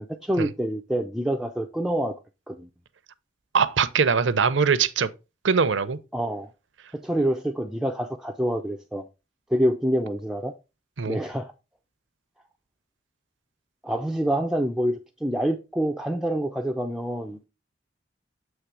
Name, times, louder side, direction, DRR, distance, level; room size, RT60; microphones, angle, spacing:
voice 1, 0.0-2.2 2.5-2.7 6.1-6.5 6.9-9.0 9.5-10.5 11.1-11.5 13.8-17.4, equal, 5° right, 0.4 m, -26 dB
voice 2, 3.5-5.1 5.4-6.0 11.0-11.2, right 5 dB, 75° right, 0.6 m, -22 dB
8.1 x 3.2 x 4.7 m
head